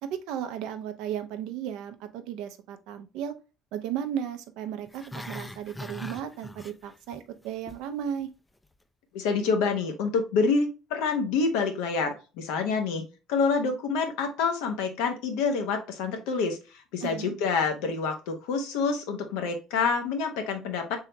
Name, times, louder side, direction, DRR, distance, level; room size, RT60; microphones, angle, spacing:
voice 1, 0.0-3.3 3.7-8.3 17.0-17.3, right 9 dB, 75° right, 0.5 m, -35 dB
Growling, 4.9-7.2 7.4-7.8 8.2-8.3, left 1 dB, 10° left, 0.4 m, -41 dB
voice 2, 9.1-13.0 13.3-16.6 16.9-21.0, left 4 dB, 80° left, 0.9 m, -27 dB
3.6 x 3.3 x 2.8 m
supercardioid pair, 80°, 0 cm